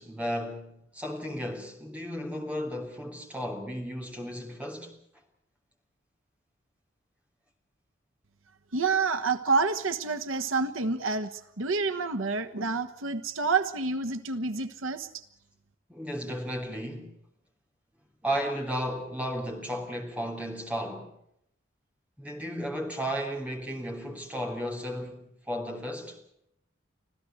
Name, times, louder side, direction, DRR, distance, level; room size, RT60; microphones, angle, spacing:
voice 1, 0.0-4.9 15.9-17.1 18.2-21.1 22.2-26.2, equal, 5° right, 3.2 m, -34 dB
voice 2, 8.7-15.1, right 4 dB, 90° right, 1.3 m, -28 dB
25.5 x 15.5 x 7.9 m
head